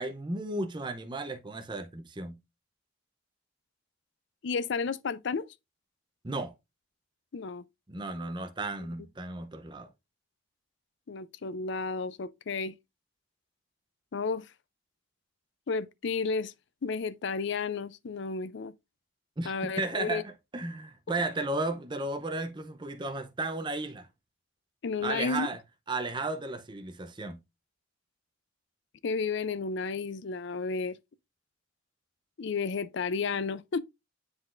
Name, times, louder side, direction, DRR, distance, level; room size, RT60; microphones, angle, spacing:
voice 1, 0.0-2.4 6.2-6.5 7.9-9.9 19.4-24.1 25.0-25.6 25.9-27.4, right 2 dB, 20° right, 0.6 m, -34 dB
voice 2, 4.4-5.5 7.3-7.6 11.1-12.7 14.1-14.5 15.7-16.5 16.8-18.7 19.4-20.2 24.8-25.5 29.0-31.0 32.4-33.8, left 4 dB, 60° left, 0.4 m, -32 dB
9.6 x 3.9 x 2.5 m
head